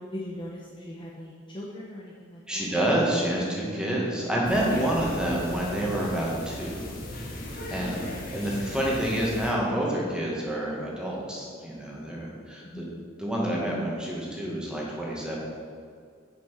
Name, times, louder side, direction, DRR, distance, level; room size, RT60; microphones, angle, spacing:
voice 1, 0.0-2.8 7.7-8.4 12.6-12.9, left 1 dB, 25° left, -3 dB, 0.9 m, -41 dB
voice 2, 2.5-7.0 7.7-8.0 8.3-12.8 13.2-15.4, right 1 dB, 5° right, -4 dB, 1.9 m, -28 dB
Keyboard (musical), 3.0-6.3, right 1 dB, 25° right, 1.0 m, -43 dB
sound 1, 4.4-9.5, left 1 dB, 45° left, 1.7 m, -37 dB
9.6 x 6.0 x 5.9 m, 2.1 s
head